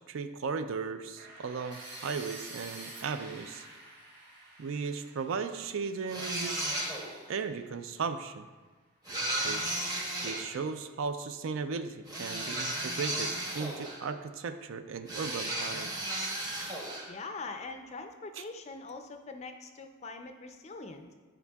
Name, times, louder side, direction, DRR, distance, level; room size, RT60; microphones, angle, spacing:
voice 1, 0.1-3.7 4.6-6.7 7.3-8.5 9.4-9.9 10.2-15.9 18.3-18.4, right 5 dB, 70° right, 10 dB, 0.4 m, -36 dB
sound 1, 1.2-7.1, right 2 dB, 50° right, 1.4 m, -48 dB
sound 2, 6.1-7.2 9.0-10.5 12.1-14.1 15.1-17.1, right 1 dB, 20° right, 0.8 m, -34 dB
voice 2, 17.1-21.1, left 3 dB, 30° left, 6 dB, 0.4 m, -43 dB
9.7 x 4.9 x 2.3 m, 1.3 s
head